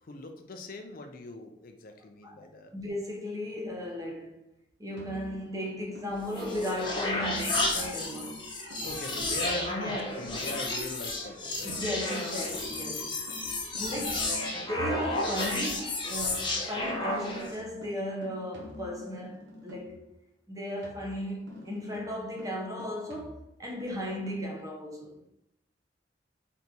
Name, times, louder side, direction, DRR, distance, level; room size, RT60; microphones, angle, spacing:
voice 1, 0.0-2.7 8.8-11.7 13.9-14.0, left 2 dB, 50° left, 0.4 m, -40 dB
voice 2, 2.7-4.4 4.8-8.4 9.7-10.1 11.6-13.2 13.8-14.2 14.5-20.1 20.5-25.3, equal, 20° right, 0.8 m, -36 dB
sound 1, 4.9-6.4 7.1-10.9 11.7-15.4 16.2-20.1 20.8-23.8 24.3-24.4, left 2 dB, 85° right, 0.9 m, -47 dB
sound 2, 6.1-17.6, left 2 dB, 25° left, 0.7 m, -32 dB
3.9 x 3.4 x 2.9 m
head